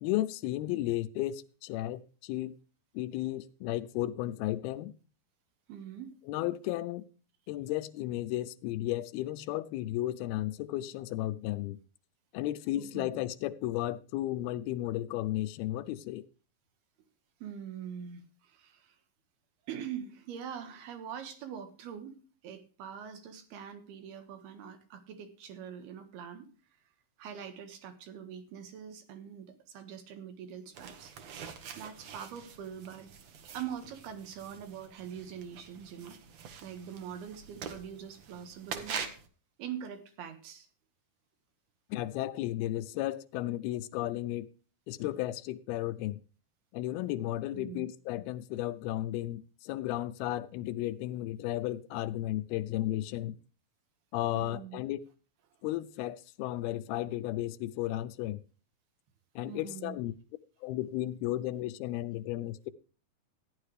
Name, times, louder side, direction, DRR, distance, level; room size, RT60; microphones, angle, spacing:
voice 1, 0.0-2.6 2.9-4.9 6.3-7.1 7.5-11.8 12.3-16.3 41.9-44.5 44.9-46.2 46.7-53.4 54.1-55.0 55.6-58.4 59.4-60.1 60.6-62.7, left 15 dB, 85° left, 2.6 m, -34 dB
voice 2, 5.7-6.1 12.7-13.1 17.4-19.0 19.7-22.2 22.4-26.5 27.2-31.1 31.8-33.1 33.5-36.2 36.6-39.1 39.6-40.7 47.5-47.9 54.4-54.9 59.5-60.0, right 8 dB, 85° right, 3.6 m, -43 dB
sound 1, 30.7-39.3, right 7 dB, 60° right, 1.9 m, -45 dB
15.0 x 10.0 x 3.2 m
omnidirectional pair, 4.4 m